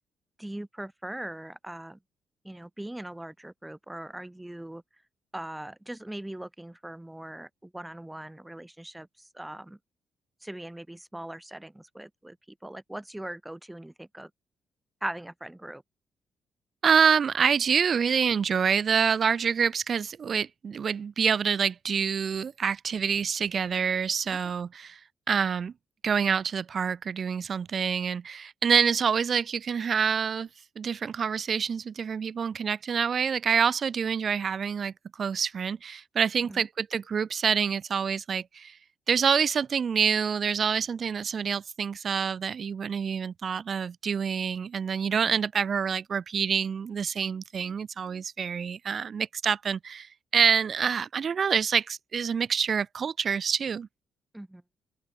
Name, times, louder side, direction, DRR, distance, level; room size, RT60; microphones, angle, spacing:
voice 1, 0.4-2.0 2.4-4.8 5.3-9.8 10.4-12.4 12.6-14.3 15.0-15.8 36.4-36.7 45.1-45.4 54.3-54.6, right 1 dB, 10° right, 4.7 m, -40 dB
voice 2, 16.8-25.0 25.3-25.7 26.0-30.5 30.8-38.8 39.1-53.9, right 6 dB, 50° right, 0.4 m, -27 dB
open air
cardioid pair, 90°, 0 cm